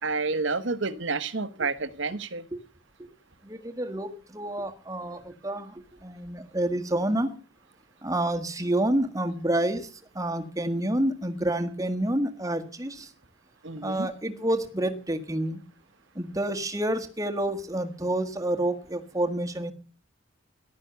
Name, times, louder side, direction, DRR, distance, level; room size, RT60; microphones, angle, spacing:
voice 1, 0.0-2.4 13.6-14.1, right 3 dB, 60° right, 1.2 m, -29 dB
voice 2, 3.4-7.3 8.0-13.1 13.8-15.6 16.1-19.7, right 1 dB, 15° right, 1.6 m, -28 dB
14.0 x 11.5 x 6.8 m
head